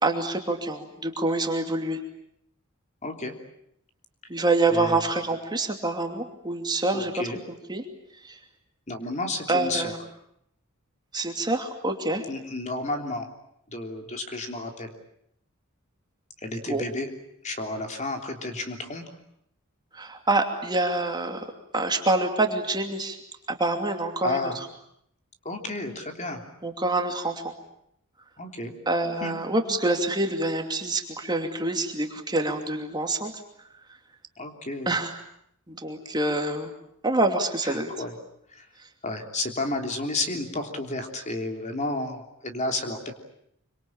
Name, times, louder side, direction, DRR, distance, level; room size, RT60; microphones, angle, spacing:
voice 1, 0.0-2.0 4.3-7.1 7.7-7.8 8.2-8.4 9.5-10.0 11.1-12.2 16.7-16.8 19.9-21.5 21.7-23.2 23.5-24.5 26.6-27.5 28.9-33.3 34.9-35.1 35.7-36.7 37.0-37.9, right 2 dB, 20° right, 4 dB, 2.7 m, -26 dB
voice 2, 3.0-3.3 4.7-5.0 6.9-7.4 8.9-9.9 12.3-13.3 13.7-14.9 16.4-17.1 17.4-19.0 24.2-24.6 25.4-26.4 28.4-28.7 29.2-29.3 34.4-34.9 37.6-38.1 38.5-38.7 39.0-43.1, left 2 dB, 35° left, 4 dB, 3.3 m, -31 dB
26.0 x 25.0 x 8.9 m, 0.73 s
head